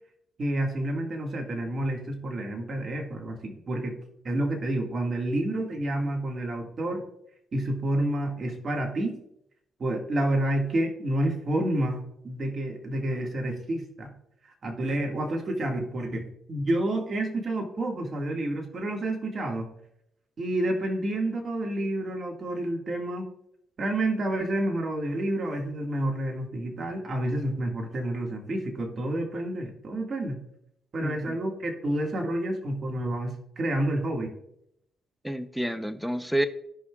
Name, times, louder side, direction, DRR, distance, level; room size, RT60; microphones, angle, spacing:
voice 1, 0.4-3.9 4.2-7.0 7.5-9.1 9.8-14.1 14.6-19.7 20.4-23.3 23.8-30.4 30.9-34.3, right 1 dB, 45° right, 1 dB, 1.9 m, -29 dB
voice 2, 31.0-31.4 35.2-36.5, right 1 dB, ahead, 10 dB, 0.7 m, -29 dB
15.5 x 5.5 x 2.4 m, 0.77 s
cardioid pair, 90°, 0 cm